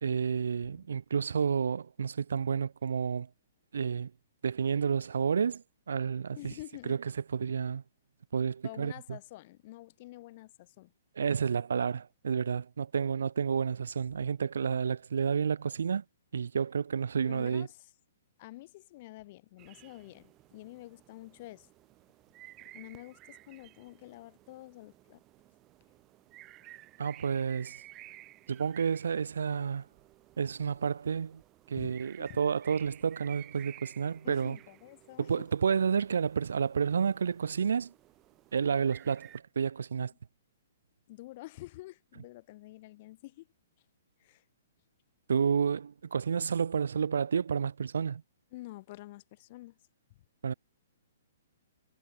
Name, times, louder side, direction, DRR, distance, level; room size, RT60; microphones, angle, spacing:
voice 1, 0.0-3.3 3.7-4.1 4.4-6.5 6.8-7.8 8.3-9.2 11.2-16.0 16.3-17.7 27.0-27.8 28.5-29.8 30.4-31.4 31.7-34.6 35.2-37.9 38.5-40.1 45.3-48.2 50.4-50.5, right 6 dB, 85° right, 1.5 m, -30 dB
voice 2, 6.3-7.0 8.6-10.9 17.3-17.9 18.4-21.7 22.7-25.2 31.7-32.4 34.2-35.5 41.1-43.5 44.2-44.4 48.5-49.8, left 18 dB, 35° left, 6.6 m, -48 dB
sound 1, 19.6-39.4, right 16 dB, 20° right, 2.2 m, -55 dB
hypercardioid pair, 160°, 0 cm